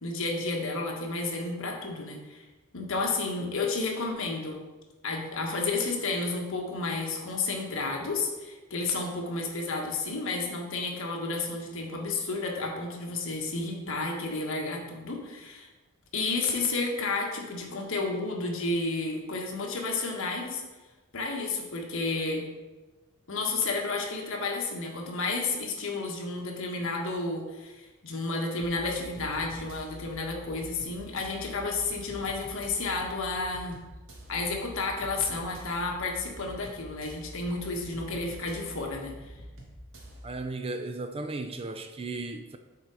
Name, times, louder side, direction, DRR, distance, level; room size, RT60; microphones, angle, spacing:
voice 1, 0.0-2.4 2.7-4.6 5.0-15.7 16.1-20.6 21.1-22.5 23.3-33.8 34.3-39.3, left 3 dB, 65° left, 1.3 m, -31 dB
sound 1, 28.6-40.3, equal, 60° right, 1.4 m, -46 dB
voice 2, 40.2-42.6, right 2 dB, 25° right, 0.4 m, -35 dB
7.3 x 4.0 x 4.7 m
head